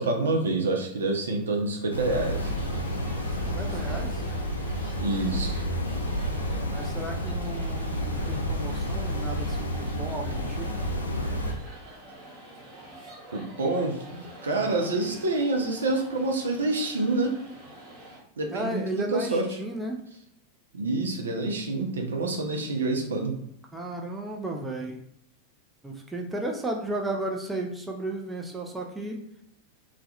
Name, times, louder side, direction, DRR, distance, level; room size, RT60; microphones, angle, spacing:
voice 1, 0.0-2.5 5.0-5.6 13.3-17.4 18.4-19.6 20.7-23.4, right 2 dB, 70° right, 2 dB, 0.4 m, -27 dB
sound 1, 1.9-11.5, equal, 80° left, 0.3 m, -30 dB
sound 2, 2.1-18.2, right 1 dB, 45° right, 0.8 m, -46 dB
voice 2, 3.5-4.2 6.7-10.8 14.6-14.8 18.5-20.0 23.7-25.0 25.8-29.2, right 1 dB, 10° right, 1 dB, 0.3 m, -34 dB
2.2 x 2.1 x 2.7 m, 0.73 s
figure-of-eight pair, 90°, 0 cm